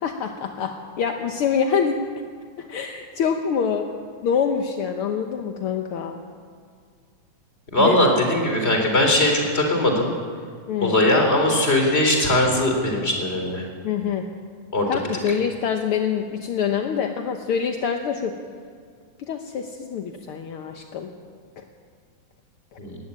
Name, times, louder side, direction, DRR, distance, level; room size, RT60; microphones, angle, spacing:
voice 1, 0.0-2.0 2.6-3.9 4.2-6.2 7.8-8.0 10.7-11.0 13.8-14.2 14.9-18.3 19.2-21.1 21.6-21.7, left 7 dB, 65° left, 4 dB, 1.4 m, -25 dB
voice 2, 7.7-10.1 10.8-13.6 14.7-15.0 22.8-23.0, left 1 dB, 20° left, 2 dB, 3.6 m, -20 dB
18.5 x 15.0 x 9.8 m, 2.1 s
omnidirectional pair, 3.6 m